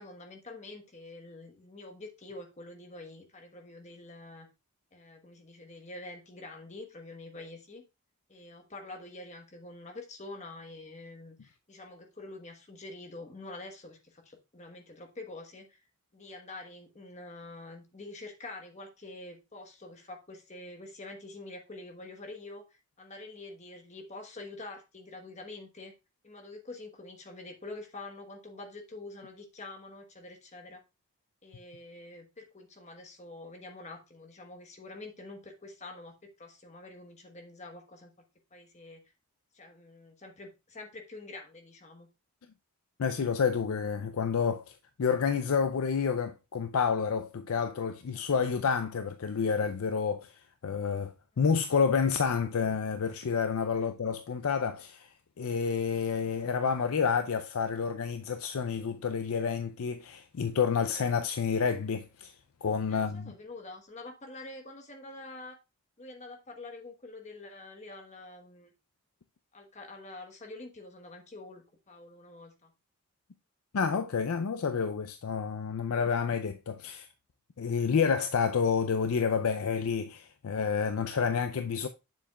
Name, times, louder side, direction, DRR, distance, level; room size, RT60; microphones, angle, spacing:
voice 1, 0.0-4.5 4.9-7.8 8.3-15.8 16.1-25.9 26.2-30.8 31.4-38.1 38.5-39.0 39.5-42.1 53.8-53.9 62.9-65.6 66.0-68.7 69.5-72.7, left 2 dB, 30° left, 1.2 m, -46 dB
voice 2, 43.0-44.7 45.0-62.3 62.6-63.3 73.7-77.1 77.6-81.9, left 6 dB, 75° left, 0.5 m, -29 dB
7.2 x 7.1 x 2.3 m
head